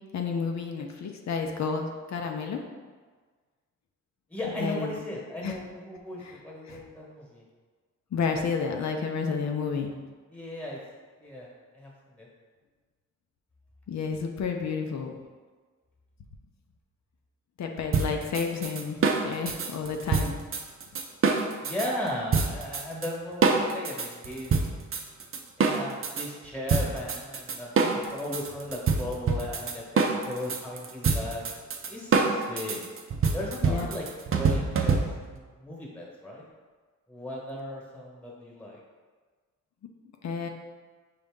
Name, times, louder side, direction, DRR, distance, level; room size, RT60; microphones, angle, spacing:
voice 1, 0.1-2.6 4.4-5.0 5.4-5.6 6.2-6.8 8.1-9.9 13.9-15.1 17.6-20.3 33.6-34.0 40.2-40.5, left 5 dB, 60° left, 3 dB, 0.6 m, -31 dB
voice 2, 4.3-7.4 10.3-10.8 11.2-11.5 11.7-12.3 21.6-24.6 25.6-31.4 31.9-32.8 33.3-35.0 35.3-36.4 37.1-38.8, left 1 dB, 5° left, -3 dB, 1.3 m, -36 dB
sound 1, 17.9-21.9 22.3-23.1 23.4-26.3 26.7-35.4, right 4 dB, 45° right, 0.6 m, -26 dB
5.2 x 2.8 x 3.6 m, 1.4 s
cardioid pair, 85°, 31 cm